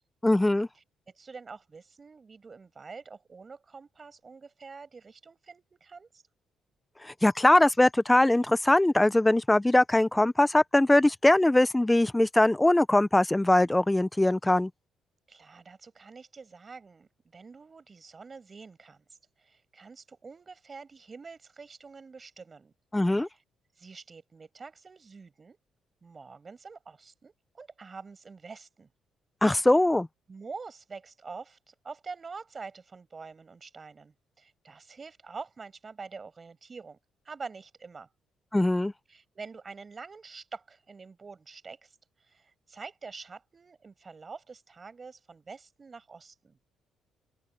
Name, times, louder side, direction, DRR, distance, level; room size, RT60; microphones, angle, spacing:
voice 1, 0.2-0.7 7.0-14.7 22.9-23.3 29.4-30.1 38.5-38.9, left 1 dB, 10° left, 0.5 m, -22 dB
voice 2, 0.7-6.2 15.3-22.7 23.2-23.4 23.8-25.6 26.0-28.9 30.3-37.0 37.2-38.1 39.1-46.6, right 4 dB, 35° right, 6.6 m, -46 dB
open air
cardioid pair, 90°, 0 cm